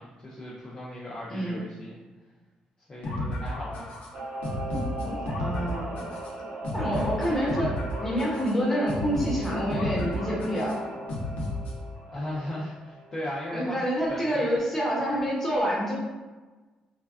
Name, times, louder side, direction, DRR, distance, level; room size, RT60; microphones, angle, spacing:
voice 1, 0.0-2.0 2.9-3.9 6.8-7.1 12.1-13.8 14.1-14.5, left 1 dB, 30° left, -6 dB, 0.5 m, -37 dB
voice 2, 1.3-1.6 5.4-6.0 6.7-7.7 8.0-10.8 13.5-15.9, equal, 10° left, -5 dB, 1.0 m, -27 dB
sound 1, 3.0-12.0, left 1 dB, 75° left, 0.7 m, -33 dB
Singing / Musical instrument, 4.1-14.2 14.5-14.6, right 2 dB, 50° right, 0.3 m, -39 dB
3.3 x 2.2 x 2.4 m, 1.2 s
cardioid pair, 100°, 2 cm